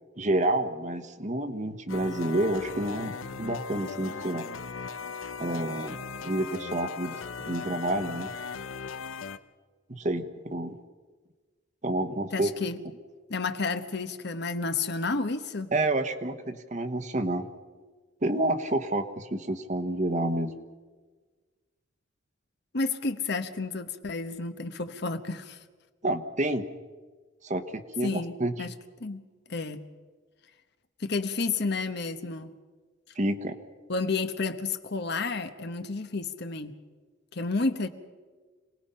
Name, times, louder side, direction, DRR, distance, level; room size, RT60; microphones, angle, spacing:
voice 1, 0.2-4.5 5.4-7.2 7.5-8.3 9.9-10.8 11.8-12.5 15.7-17.5 18.2-20.5 26.0-26.7 27.4-28.5 33.2-33.6, right 1 dB, 35° right, 9 dB, 1.1 m, -29 dB
sound 1, 1.9-9.4, left 5 dB, 85° left, 0.8 m, -38 dB
voice 2, 12.3-12.8 13.3-15.7 22.7-25.6 28.0-28.7 29.0-29.2 29.5-29.8 31.0-32.5 33.9-36.7 37.3-37.9, left 3 dB, 55° left, 9 dB, 1.1 m, -31 dB
27.0 x 19.0 x 5.6 m, 1.4 s
head